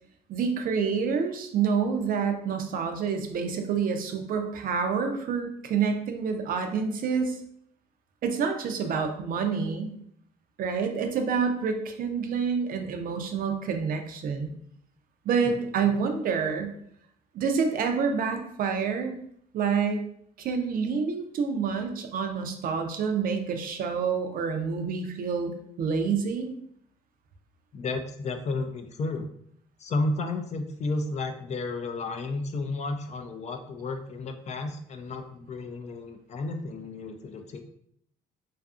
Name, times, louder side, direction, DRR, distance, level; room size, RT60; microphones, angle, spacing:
voice 1, 0.3-7.4 8.2-9.9 10.6-14.5 15.3-16.8 17.3-19.2 19.5-20.0 20.4-26.5, right 6 dB, 55° right, 5 dB, 0.4 m, -28 dB
voice 2, 15.4-16.0 27.7-29.3 29.8-37.6, left 3 dB, 40° left, 7 dB, 0.4 m, -32 dB
2.5 x 2.4 x 2.4 m, 0.68 s
cardioid pair, 90°, 18 cm